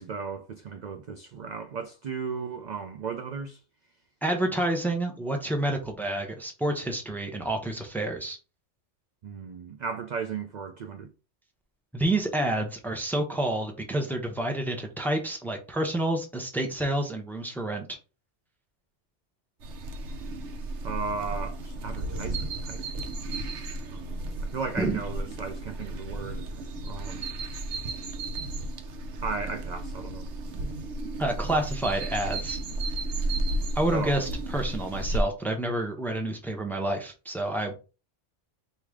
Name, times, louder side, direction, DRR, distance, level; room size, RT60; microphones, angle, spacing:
voice 1, 0.0-3.6 9.2-11.1 20.8-22.8 23.9-26.5 26.8-27.3 29.2-30.3 33.9-34.2, right 5 dB, 60° right, 0.5 m, -35 dB
voice 2, 4.2-8.4 11.9-18.0 24.8-25.0 31.2-32.6 33.8-37.7, right 1 dB, ahead, 0.7 m, -29 dB
sound 1, 19.6-35.2, right 2 dB, 75° right, 1.0 m, -33 dB
4.8 x 2.7 x 3.6 m
omnidirectional pair, 1.2 m